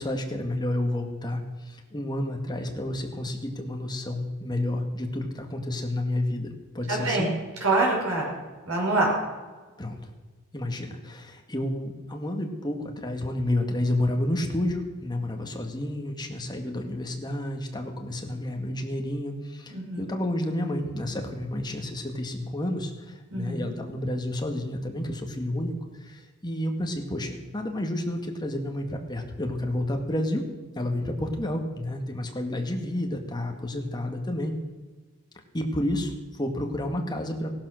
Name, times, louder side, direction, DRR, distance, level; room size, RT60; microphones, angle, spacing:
voice 1, 0.0-6.5 6.7-7.3 9.8-10.0 10.5-30.4 30.8-34.5 35.5-37.5, left 1 dB, 20° left, 3 dB, 1.9 m, -30 dB
voice 2, 6.9-7.3 7.6-8.2 8.7-9.1 19.7-20.0 23.3-23.8, right 2 dB, 75° right, -2 dB, 5.8 m, -25 dB
17.5 x 11.5 x 6.5 m, 1.3 s
head